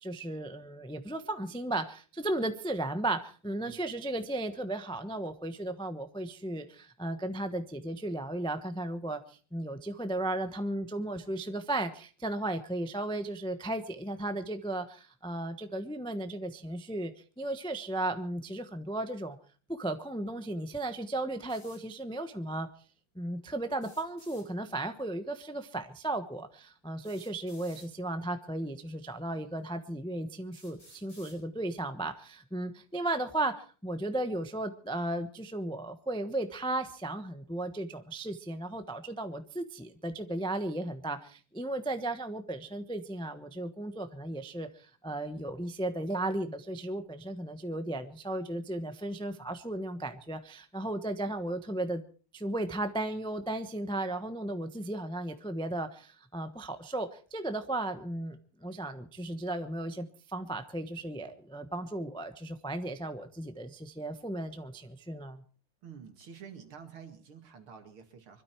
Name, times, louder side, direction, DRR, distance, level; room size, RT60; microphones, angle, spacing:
voice 1, 0.0-17.1 17.4-19.4 19.7-22.7 23.1-52.0 52.3-65.4, right 1 dB, 5° left, 8 dB, 0.3 m, -35 dB
sound 1, 21.5-21.8 23.7-24.5 25.9-26.0 27.0-27.9 28.9-29.0 29.7-29.8 30.5-31.4, equal, 25° left, 7.3 m, -56 dB
voice 2, 65.8-68.4, right 7 dB, 70° right, 5 dB, 3.0 m, -49 dB
25.0 x 12.5 x 4.5 m, 0.40 s
omnidirectional pair, 2.4 m